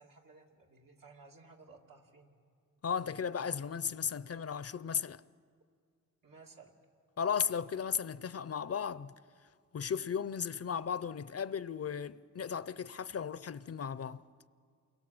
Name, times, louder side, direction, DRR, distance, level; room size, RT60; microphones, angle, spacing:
voice 1, 0.0-2.4 6.2-6.8, right 4 dB, 80° right, 2.8 m, -57 dB
voice 2, 2.8-5.2 7.2-9.1 9.7-14.2, left 7 dB, 45° left, 0.6 m, -35 dB
29.0 x 22.0 x 7.8 m
wide cardioid pair, 105°, 33 cm